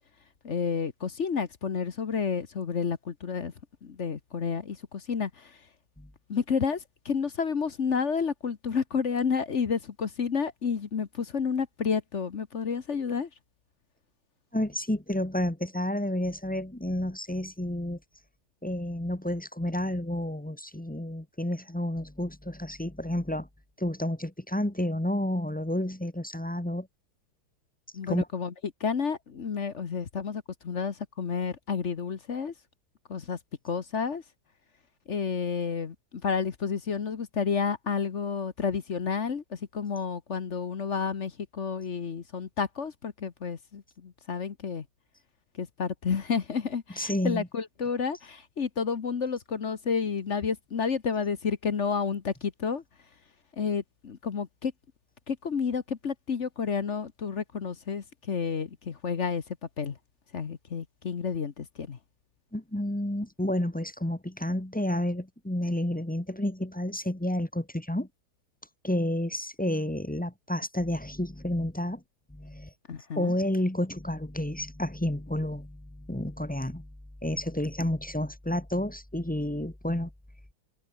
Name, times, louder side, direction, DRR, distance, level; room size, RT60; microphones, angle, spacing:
voice 1, 0.4-3.5 3.8-5.6 6.3-13.3 27.9-28.5 28.8-32.5 33.1-33.4 33.6-34.2 35.1-44.8 45.6-52.8 53.6-54.7 55.3-59.4 59.8-60.0 60.3-62.0 72.9-73.3, left 6 dB, 40° left, 1.2 m, -30 dB
voice 2, 14.5-18.0 18.6-23.5 23.8-26.9 28.1-28.3 47.0-47.5 62.5-68.1 68.8-72.0 72.3-72.7 73.2-76.9 77.2-80.1, left 1 dB, 5° left, 1.0 m, -30 dB
omnidirectional pair, 2.3 m